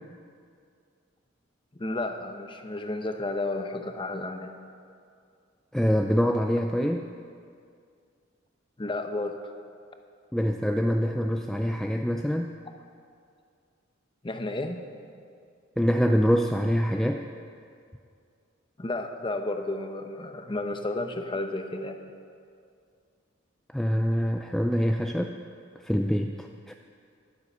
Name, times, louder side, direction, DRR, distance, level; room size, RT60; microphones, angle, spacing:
voice 1, 1.7-4.6 8.8-9.4 14.2-14.9 18.8-22.0, left 2 dB, 25° left, 6 dB, 0.8 m, -32 dB
voice 2, 5.7-7.1 10.3-12.5 15.8-17.2 23.7-25.4 25.8-26.7, equal, ahead, 4 dB, 0.3 m, -25 dB
12.0 x 9.8 x 6.8 m, 2.3 s
head